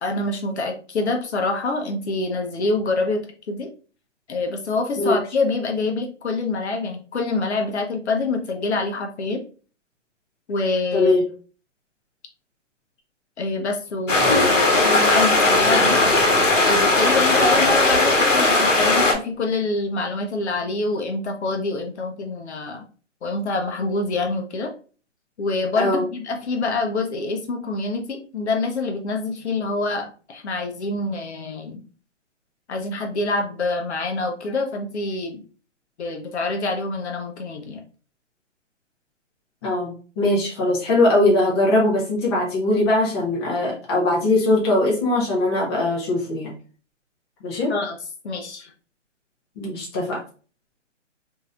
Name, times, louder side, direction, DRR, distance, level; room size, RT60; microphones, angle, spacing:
voice 1, 0.0-3.2 3.5-3.7 4.3-9.4 10.5-11.1 13.4-16.0 16.6-22.8 23.2-24.7 25.4-31.8 32.7-35.4 36.0-37.8 47.7-48.0 48.2-48.7, left 3 dB, 60° left, 3 dB, 0.7 m, -26 dB
voice 2, 10.9-11.2 25.8-26.0 39.6-46.5 47.4-47.7 49.6-50.2, left 2 dB, 20° left, -3 dB, 0.7 m, -21 dB
sound 1, 14.1-19.1, left 2 dB, 90° left, 1.0 m, -18 dB
sound 2, 14.1-15.8 16.1-18.3, left 2 dB, 5° left, 1.0 m, -31 dB
3.1 x 2.7 x 2.4 m, 0.38 s
hypercardioid pair, 150°, 37 cm